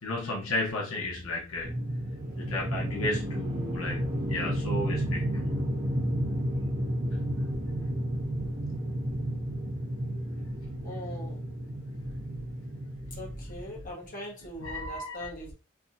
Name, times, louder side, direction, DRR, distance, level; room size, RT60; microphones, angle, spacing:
voice 1, 0.0-1.7 2.4-5.5 14.6-15.3, left 2 dB, 80° left, -2 dB, 1.0 m, -34 dB
sound 1, 1.6-13.9, equal, 40° right, 1.2 m, -32 dB
voice 2, 10.8-11.4 13.2-15.5, equal, 40° left, -3 dB, 1.4 m, -40 dB
3.4 x 3.3 x 2.6 m, 0.33 s
head